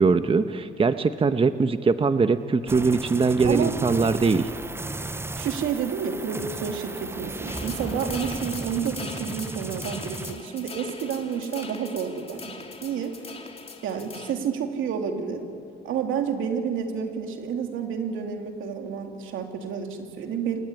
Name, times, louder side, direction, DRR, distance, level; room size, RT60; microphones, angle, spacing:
voice 1, 0.0-4.5, right 4 dB, 30° right, 10 dB, 1.0 m, -21 dB
sound 1, 2.7-10.9 11.2-11.7, right 2 dB, 10° right, 0.7 m, -35 dB
voice 2, 3.4-3.8 5.4-13.1 13.8-15.5 15.8-20.6, right 7 dB, 85° right, 4 dB, 2.9 m, -30 dB
sound 2, 7.5-14.3, left 4 dB, 30° left, 3.0 m, -41 dB
26.0 x 21.5 x 9.9 m, 2.4 s
cardioid pair, 90°, 20 cm